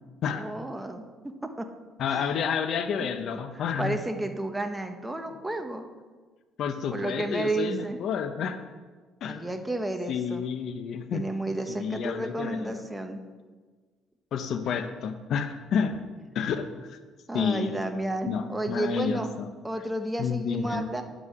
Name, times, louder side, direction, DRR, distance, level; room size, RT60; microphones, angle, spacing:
voice 1, 0.3-1.7 2.1-2.3 3.0-3.4 3.8-5.9 6.9-8.0 9.2-10.5 11.1-13.2 17.3-19.3 19.6-21.0, right 2 dB, 10° right, 5 dB, 1.0 m, -32 dB
voice 2, 2.0-4.0 5.3-5.4 6.6-8.6 9.2-9.5 10.1-11.3 11.7-12.8 14.3-16.0 16.3-17.0 17.3-17.8 18.3-19.5 20.2-20.9, left 7 dB, 60° left, 8 dB, 0.8 m, -30 dB
9.3 x 6.1 x 7.8 m, 1.4 s
cardioid pair, 105°, 0 cm